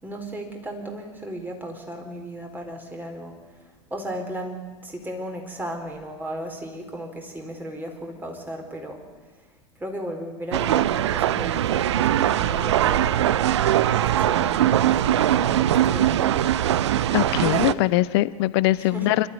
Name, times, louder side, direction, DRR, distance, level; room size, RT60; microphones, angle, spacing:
voice 1, 0.0-9.0 9.4-9.5 9.8-13.4 14.2-16.3 17.4-17.8 18.7-19.2, right 1 dB, 10° right, 3 dB, 4.4 m, -35 dB
sound 1, 10.5-17.7, right 11 dB, 70° right, 0.7 m, -21 dB
voice 2, 17.1-19.3, left 17 dB, 55° left, 17 dB, 0.8 m, -22 dB
26.5 x 13.0 x 9.6 m, 1.4 s
figure-of-eight pair, 80°, 16 cm